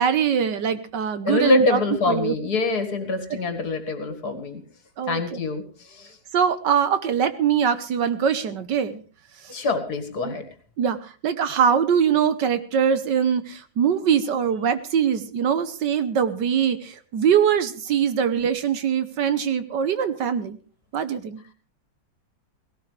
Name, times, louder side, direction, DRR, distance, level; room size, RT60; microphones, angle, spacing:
voice 1, 0.0-1.8 2.1-2.3 3.3-3.4 5.0-5.2 6.3-9.0 10.2-10.4 10.8-20.6 20.9-21.4, right 8 dB, 65° right, 12 dB, 1.5 m, -22 dB
voice 2, 1.2-4.6 5.1-6.2 9.5-10.5, left 3 dB, 50° left, 8 dB, 2.4 m, -25 dB
18.0 x 17.0 x 3.3 m, 0.37 s
omnidirectional pair, 2.1 m